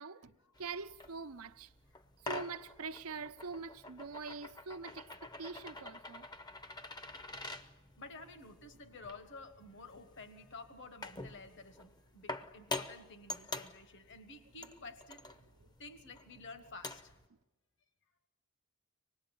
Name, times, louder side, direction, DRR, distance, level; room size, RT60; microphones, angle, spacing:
voice 1, 0.0-0.3 0.6-1.7 2.2-6.3 15.6-15.7, right 4 dB, 80° right, 0.8 m, -44 dB
sound 1, 0.6-17.3, left 2 dB, 20° left, 0.7 m, -47 dB
voice 2, 8.0-15.2 15.8-17.1, left 3 dB, 55° left, 1.3 m, -51 dB
25.0 x 19.5 x 9.0 m
head